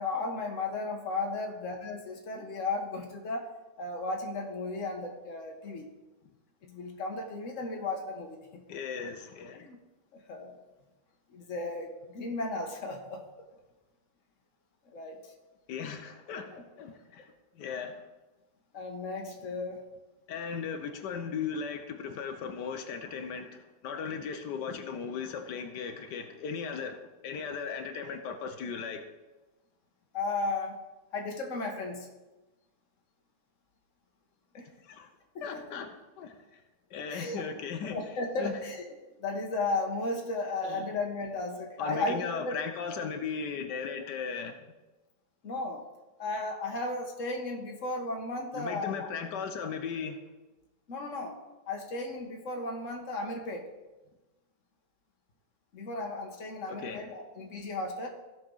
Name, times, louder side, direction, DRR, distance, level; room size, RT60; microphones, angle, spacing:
voice 1, 0.0-3.5 3.8-5.9 6.6-8.6 9.5-9.8 10.1-10.6 11.3-13.2 14.9-15.2 16.5-16.6 18.7-19.9 30.1-30.8 31.1-32.1 34.5-34.7 35.3-35.8 37.1-37.4 37.8-38.8 39.2-42.5 45.4-45.8 46.2-49.1 50.9-51.4 51.7-53.7 55.7-58.1, left 2 dB, 50° left, 2 dB, 1.6 m, -35 dB
voice 2, 8.7-9.7 15.7-18.0 20.3-29.0 34.8-35.1 35.4-36.6 36.9-38.0 38.4-38.5 40.6-40.9 41.8-44.6 48.5-50.2 56.7-57.1, left 6 dB, 90° left, 6 dB, 1.5 m, -37 dB
15.5 x 6.1 x 3.9 m, 1.1 s
omnidirectional pair, 1.8 m